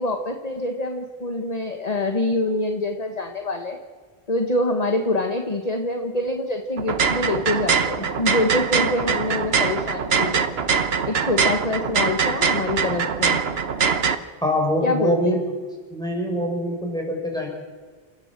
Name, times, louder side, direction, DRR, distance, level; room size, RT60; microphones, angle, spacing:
voice 1, 0.0-3.8 4.3-10.4 11.0-13.4 14.8-15.4, left 2 dB, 40° left, 4 dB, 1.5 m, -25 dB
sound 1, 6.8-14.2, right 6 dB, 70° right, 1.3 m, -22 dB
voice 2, 14.4-15.5 15.9-17.5, equal, 5° left, -1 dB, 6.0 m, -24 dB
29.0 x 14.0 x 7.5 m, 1.5 s
omnidirectional pair, 1.1 m